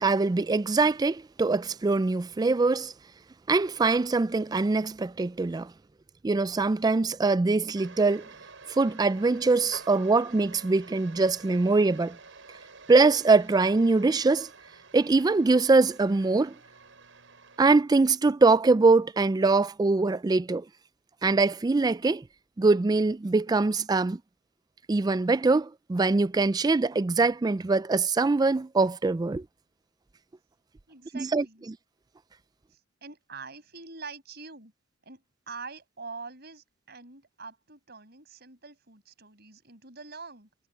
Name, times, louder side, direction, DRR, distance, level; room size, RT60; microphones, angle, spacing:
voice 1, 0.0-2.9 3.5-5.7 6.2-8.3 8.7-12.2 12.9-14.5 14.9-16.5 17.6-20.6 21.2-22.2 22.6-24.2 24.9-29.4 31.1-31.4, right 3 dB, 20° right, 0.3 m, -23 dB
sound 1, 7.8-17.8, right 4 dB, 70° right, 7.5 m, -49 dB
voice 2, 30.9-31.6 32.7-34.7 35.0-40.5, right 4 dB, 55° right, 6.4 m, -45 dB
head